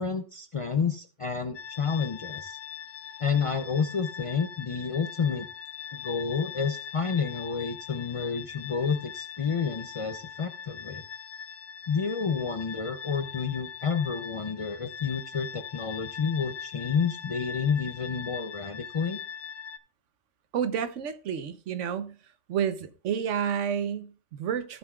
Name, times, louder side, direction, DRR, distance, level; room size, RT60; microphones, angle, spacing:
voice 1, 0.0-2.6 3.2-5.5 5.9-11.0 11.9-19.2, left 6 dB, 45° left, 0.4 m, -30 dB
sound 1, 1.5-19.8, left 8 dB, 80° left, 1.0 m, -41 dB
voice 2, 20.5-22.2 22.5-24.8, right 8 dB, 80° right, 1.1 m, -30 dB
15.0 x 7.2 x 2.3 m
omnidirectional pair, 1.2 m